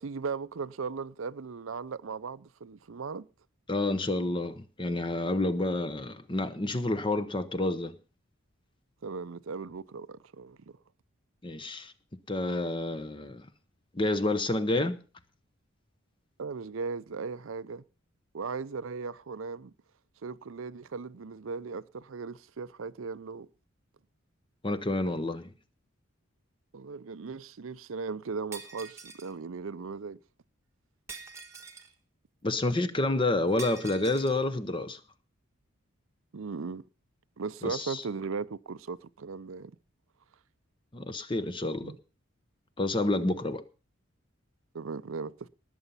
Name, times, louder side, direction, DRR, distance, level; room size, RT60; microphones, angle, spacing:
voice 1, 0.0-3.3 9.0-10.6 16.4-17.8 18.3-19.7 20.2-23.5 26.7-30.2 36.3-36.8 37.4-39.7 41.8-42.0 44.7-45.5, right 5 dB, 70° right, 0.6 m, -37 dB
voice 2, 3.7-8.0 11.4-11.9 12.3-13.5 13.9-15.0 24.6-25.5 32.4-35.0 37.6-38.0 40.9-41.9 42.8-43.6, left 2 dB, 25° left, 0.8 m, -29 dB
Shatter, 28.5-29.3 31.1-31.9 33.6-34.4, right 4 dB, 15° right, 1.3 m, -45 dB
19.5 x 7.0 x 5.5 m
head